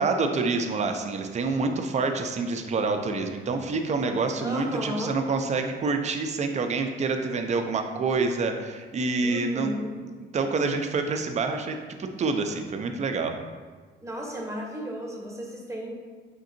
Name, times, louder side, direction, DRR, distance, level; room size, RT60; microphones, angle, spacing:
voice 1, 0.0-9.7 10.0-13.4, right 4 dB, 35° right, 5 dB, 0.4 m, -27 dB
voice 2, 4.4-5.2 9.2-9.9 14.0-15.9, equal, 15° right, -1 dB, 0.8 m, -34 dB
5.1 x 2.7 x 2.6 m, 1.4 s
cardioid pair, 90°, 20 cm